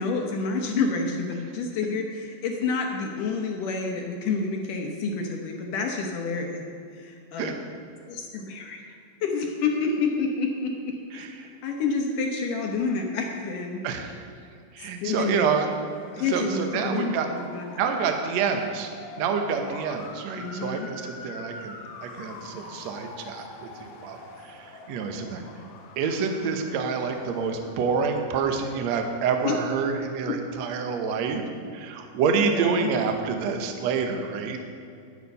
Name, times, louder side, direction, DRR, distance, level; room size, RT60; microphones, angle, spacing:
voice 1, 0.0-6.6 7.0-7.5 8.1-11.3 11.6-13.8 14.8-15.5 16.2-18.0 20.4-20.9 29.4-29.6 32.4-32.9, left 4 dB, 70° left, 2 dB, 2.3 m, -29 dB
voice 2, 11.1-11.5 13.8-14.1 14.7-15.7 16.3-17.3 17.8-18.9 19.2-24.2 24.5-24.6 24.9-25.4 26.0-31.4 31.7-34.6, right 6 dB, 80° right, 5 dB, 1.5 m, -27 dB
Motor vehicle (road) / Siren, 15.6-28.3, left 3 dB, 85° left, 3.5 m, -44 dB
11.0 x 9.9 x 5.5 m, 2.5 s
omnidirectional pair, 4.6 m